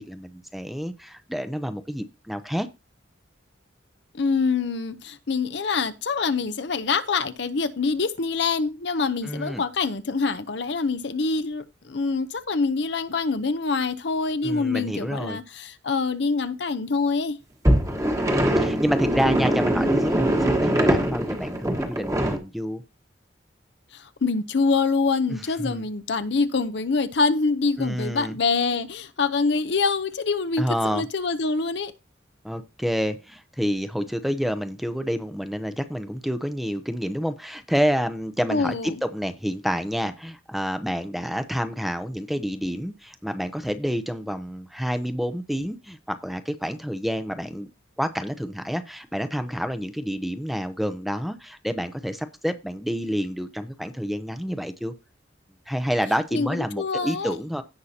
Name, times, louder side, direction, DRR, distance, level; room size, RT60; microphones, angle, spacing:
voice 1, 0.0-2.7 9.2-9.6 14.4-15.4 18.3-22.8 25.3-25.9 27.8-28.3 30.6-31.1 32.4-47.7 48.0-54.9 55.7-57.6, equal, ahead, 0.6 m, -28 dB
voice 2, 4.1-17.4 23.9-31.9 38.5-39.0 56.3-57.4, left 4 dB, 65° left, 0.7 m, -25 dB
sound 1, 17.7-22.4, right 1 dB, 15° right, 1.3 m, -22 dB
16.5 x 5.6 x 2.8 m
head